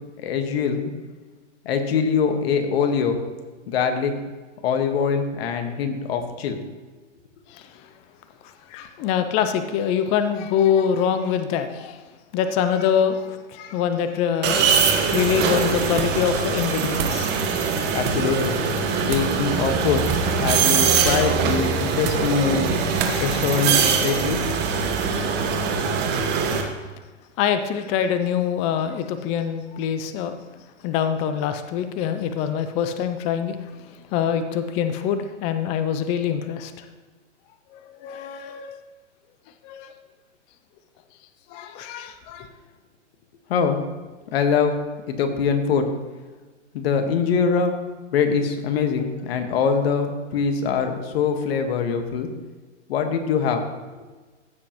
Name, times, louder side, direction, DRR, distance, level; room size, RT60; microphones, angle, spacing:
voice 1, 0.2-0.9 1.6-3.2 3.7-4.1 4.6-6.6 17.9-18.6 18.9-20.0 20.4-22.7 23.2-24.4 43.5-43.8 44.3-44.7 45.1-45.9 46.7-47.8 48.1-52.3 52.9-53.6, left 6 dB, 55° left, 6 dB, 1.6 m, -23 dB
voice 2, 8.7-12.0 12.3-17.5 27.4-30.3 30.8-33.6 34.1-36.9 37.7-38.8 39.6-39.9 41.5-42.5, left 8 dB, 20° left, 9 dB, 0.4 m, -24 dB
sound 1, 14.4-26.6, right 6 dB, 30° right, 1.3 m, -22 dB
sound 2, 15.9-16.3 16.6-17.3 18.0-18.3 19.1-19.4 20.0-20.4 21.0-21.4 22.0-22.4 23.0-23.2, right 6 dB, 50° right, 1.3 m, -31 dB
15.0 x 7.3 x 3.0 m, 1.3 s
hypercardioid pair, 130°, 37 cm